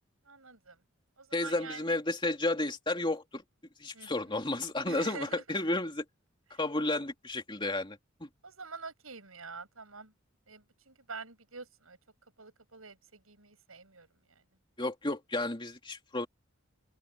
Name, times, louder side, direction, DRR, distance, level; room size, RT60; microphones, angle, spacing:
voice 1, 0.3-0.8 1.2-2.0 3.9-4.1 4.9-5.6 6.5-6.6 8.4-10.1 10.5-12.0 12.4-14.1, right 4 dB, 90° right, 7.2 m, -46 dB
voice 2, 1.3-3.4 3.8-6.0 6.6-8.3 14.8-16.3, left 2 dB, 25° left, 2.9 m, -32 dB
open air
head